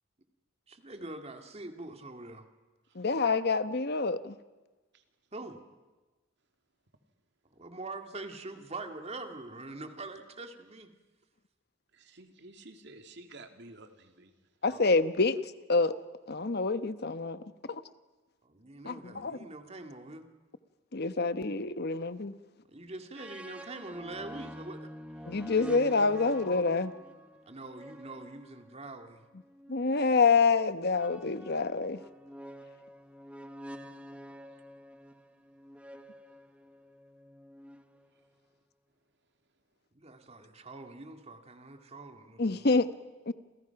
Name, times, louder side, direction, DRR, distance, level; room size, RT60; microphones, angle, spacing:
voice 1, 0.7-2.5 5.3-5.6 7.5-10.9 14.7-14.9 18.5-20.3 22.7-25.7 27.5-29.2 39.9-42.8, right 2 dB, 35° right, 2.2 m, -44 dB
voice 2, 2.9-4.3 14.6-15.4 15.7-16.0 16.3-17.4 18.8-19.4 20.9-22.4 25.3-26.9 29.7-32.0 42.4-42.9 43.3-43.4, left 4 dB, 55° left, 1.1 m, -27 dB
voice 3, 11.9-14.3, right 2 dB, 60° right, 2.5 m, -51 dB
sound 1, 23.2-29.9 30.9-38.3, equal, 5° right, 1.3 m, -48 dB
29.0 x 28.0 x 5.9 m
head